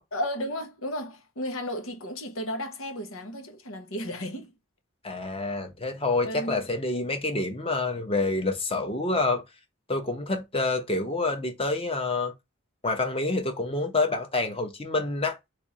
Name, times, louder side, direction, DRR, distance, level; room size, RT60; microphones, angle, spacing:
voice 1, 0.1-4.5 6.2-6.7, equal, 75° left, 1.3 m, -34 dB
voice 2, 5.0-9.4 9.9-12.3 12.8-15.4, left 2 dB, 25° left, 1.0 m, -27 dB
3.6 x 3.4 x 4.3 m
head